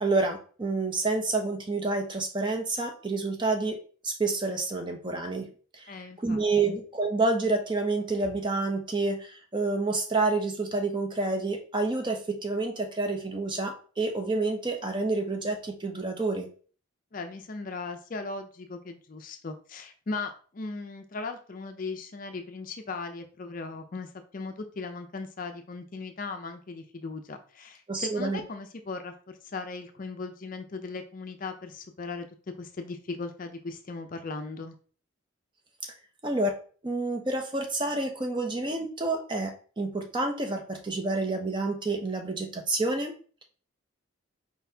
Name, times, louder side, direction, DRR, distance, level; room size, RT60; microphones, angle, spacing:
voice 1, 0.0-3.8 4.0-5.5 5.7-16.5 27.9-28.4 35.8-35.9 36.2-36.5 36.8-43.1, right 3 dB, 20° right, 5 dB, 0.6 m, -28 dB
voice 2, 5.9-6.4 6.7-6.8 17.1-32.3 32.6-34.8, left 3 dB, 40° left, 7 dB, 0.4 m, -38 dB
4.5 x 3.9 x 2.7 m, 0.41 s
head